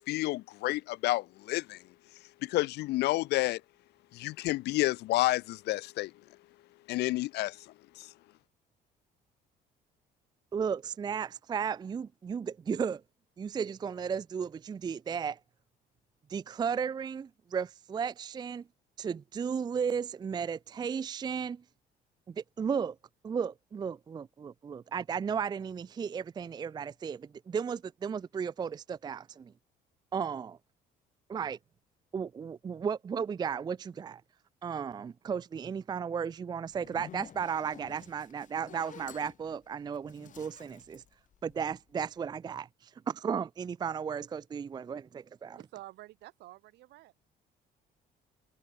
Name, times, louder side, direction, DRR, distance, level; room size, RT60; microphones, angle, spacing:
voice 1, 0.0-1.8 2.4-3.6 4.1-6.1 6.9-7.6 8.0-8.1, left 18 dB, 80° left, 1.2 m, -30 dB
voice 2, 10.5-13.0 13.4-15.4 16.3-18.6 19.0-21.6 22.3-23.0 23.2-29.5 30.1-30.6 31.3-31.6 32.1-34.2 34.6-41.0 41.4-45.6, right 7 dB, 25° right, 0.4 m, -34 dB
Zipper (clothing), 36.7-41.9, left 9 dB, 50° left, 2.1 m, -51 dB
voice 3, 45.5-47.1, right 17 dB, 80° right, 4.7 m, -49 dB
cardioid pair, 110°, 17 cm